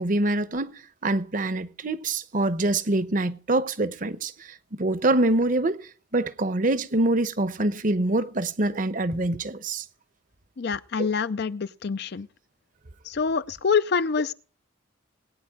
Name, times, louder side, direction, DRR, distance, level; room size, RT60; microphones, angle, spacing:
voice 1, 0.0-9.8, right 2 dB, 40° right, 0.8 m, -25 dB
voice 2, 10.6-12.3 13.0-14.3, left 5 dB, 50° left, 0.5 m, -26 dB
21.0 x 9.4 x 3.6 m
head